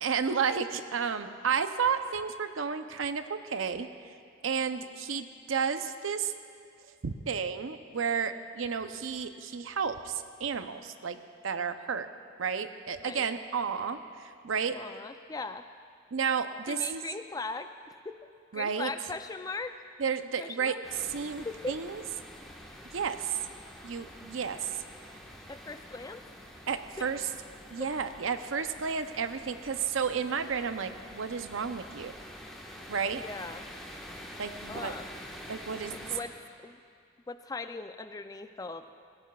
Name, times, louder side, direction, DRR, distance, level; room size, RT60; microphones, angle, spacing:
voice 1, 0.0-3.9 4.4-6.3 7.0-11.2 11.4-12.1 12.4-14.8 16.1-17.0 18.5-18.9 20.0-20.7 21.1-22.0 22.9-23.3 23.8-24.7 26.7-27.3 27.7-32.1 32.9-33.2 34.4-34.9 35.5-36.0, right 6 dB, 85° right, 9 dB, 0.6 m, -32 dB
voice 2, 14.7-15.7 16.7-18.3 18.5-19.8 20.4-20.8 21.4-21.8 25.5-26.2 27.0-27.2 27.8-27.9 33.1-33.7 34.7-35.1 35.9-36.8 37.3-38.9, left 3 dB, 20° left, 9 dB, 0.3 m, -39 dB
sound 1, 20.8-36.2, equal, ahead, 1.3 m, -47 dB
18.5 x 17.0 x 2.4 m, 2.3 s
head